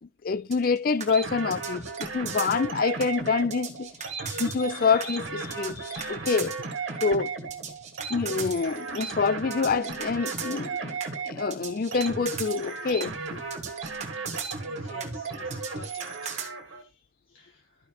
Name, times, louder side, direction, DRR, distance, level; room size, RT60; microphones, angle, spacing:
voice 1, 0.2-6.6 7.0-7.5 8.1-11.0 11.2-13.2, left 5 dB, 45° left, 0.4 m, -27 dB
sound 1, 0.5-16.5, right 7 dB, 35° right, 1.4 m, -38 dB
sound 2, 1.1-16.8, right 4 dB, 70° right, 1.7 m, -35 dB
voice 2, 14.6-16.3 16.8-16.9 17.3-17.6, left 1 dB, 70° left, 3.4 m, -48 dB
13.0 x 5.7 x 3.0 m
head